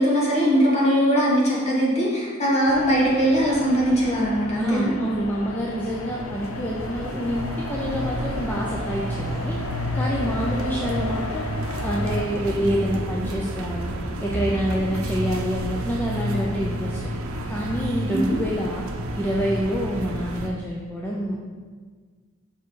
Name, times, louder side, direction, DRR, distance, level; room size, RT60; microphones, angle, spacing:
voice 1, 0.0-4.9 18.1-18.4, equal, 30° left, -5 dB, 1.5 m, -20 dB
sound 1, 2.7-12.3, left 4 dB, 85° left, 0.5 m, -35 dB
voice 2, 4.6-9.6 9.9-11.5 11.8-13.9 14.2-17.1 17.5-18.8 19.2-21.5, equal, 10° left, -3 dB, 0.4 m, -27 dB
sound 2, 5.7-20.5, right 1 dB, 90° right, 0.6 m, -30 dB
5.6 x 4.5 x 4.7 m, 1.5 s
head